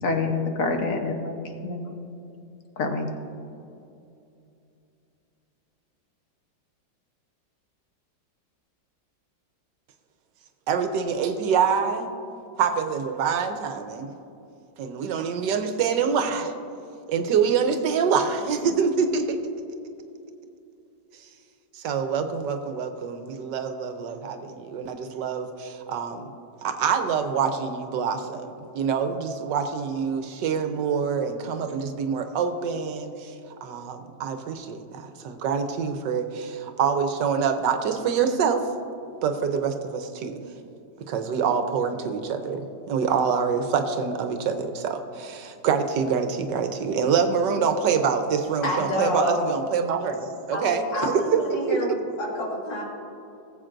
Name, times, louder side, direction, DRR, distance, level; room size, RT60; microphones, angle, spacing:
voice 1, 0.0-1.9 2.8-3.1, left 3 dB, 55° left, 4 dB, 1.2 m, -27 dB
voice 2, 10.7-12.1 12.6-14.1 14.8-16.5 17.1-19.4 21.7-26.3 26.6-33.3 33.6-38.7 39.2-40.4 41.0-51.4 51.7-51.8, right 6 dB, 80° right, 7 dB, 1.4 m, -26 dB
voice 3, 48.6-49.5 50.5-52.8, left 1 dB, 85° left, -3 dB, 2.6 m, -28 dB
19.0 x 7.8 x 2.5 m, 2.7 s
omnidirectional pair, 1.9 m